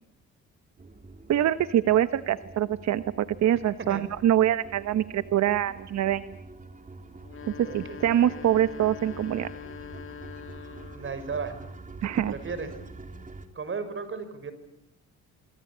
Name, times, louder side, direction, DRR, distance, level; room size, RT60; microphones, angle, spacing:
sound 1, 0.8-13.5, right 3 dB, 25° right, 3.4 m, -46 dB
voice 1, 1.3-6.3 7.6-9.5 12.0-12.3, right 11 dB, 65° right, 13 dB, 1.0 m, -24 dB
sound 2, 7.2-11.2, left 9 dB, 45° left, 2.2 m, -43 dB
voice 2, 7.6-8.0 10.9-11.5 12.0-12.7 13.5-14.5, right 5 dB, 40° right, 11 dB, 5.7 m, -35 dB
26.0 x 25.5 x 8.6 m, 0.77 s
cardioid pair, 90°, 30 cm